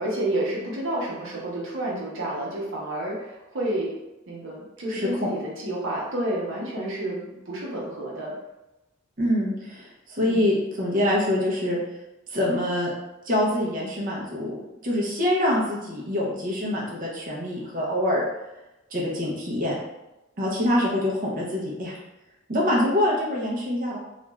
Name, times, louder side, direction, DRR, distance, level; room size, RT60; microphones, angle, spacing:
voice 1, 0.0-3.9 4.3-8.3 10.2-10.5, right 1 dB, 70° right, -4 dB, 0.8 m, -30 dB
voice 2, 4.9-5.3 9.2-11.8 12.3-12.9 13.3-14.6 14.8-18.2 18.9-19.7 20.4-22.0 22.5-24.0, left 1 dB, 45° right, -4 dB, 0.6 m, -25 dB
2.4 x 2.3 x 3.0 m, 0.98 s
head